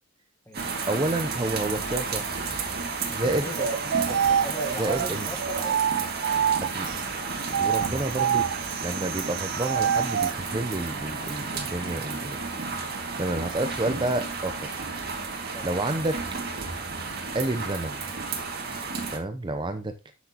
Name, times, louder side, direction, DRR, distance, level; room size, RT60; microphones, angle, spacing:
sound 1, 0.5-19.2, right 4 dB, 55° right, 2.1 m, -32 dB
voice 1, 0.9-2.4 3.1-3.5 4.8-5.3 6.6-6.9 7.5-8.5 8.8-12.4 13.2-14.7 15.6-16.2 17.3-18.0 19.1-19.9, right 2 dB, 25° right, 0.7 m, -29 dB
voice 2, 3.2-5.8 15.5-15.7, left 1 dB, 10° left, 1.3 m, -37 dB
sound 2, 3.5-6.9 7.4-10.4, right 8 dB, 70° right, 0.3 m, -26 dB
13.0 x 6.1 x 2.9 m
head